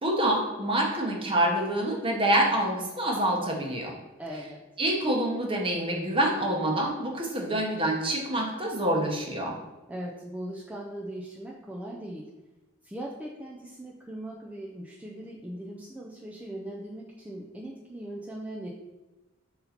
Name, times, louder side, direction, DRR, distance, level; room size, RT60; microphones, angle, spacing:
voice 1, 0.0-3.9 4.8-9.6, right 1 dB, 25° right, 0 dB, 1.0 m, -26 dB
voice 2, 4.2-4.6 9.9-12.2 12.8-18.7, right 1 dB, 5° right, -4 dB, 0.5 m, -39 dB
5.5 x 4.0 x 4.3 m, 1.1 s
head